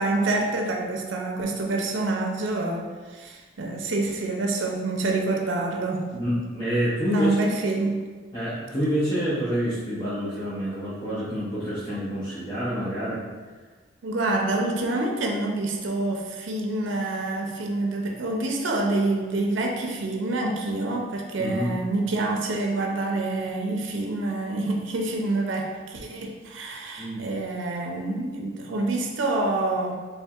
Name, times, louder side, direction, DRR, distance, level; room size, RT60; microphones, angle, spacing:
voice 1, 0.0-6.1 7.1-8.0 14.0-30.0, right 2 dB, 80° right, 1 dB, 0.5 m, -27 dB
voice 2, 6.1-7.4 8.3-13.3 21.4-21.7 27.0-27.3, equal, 20° left, -11 dB, 0.7 m, -27 dB
4.3 x 3.3 x 2.4 m, 1.4 s
head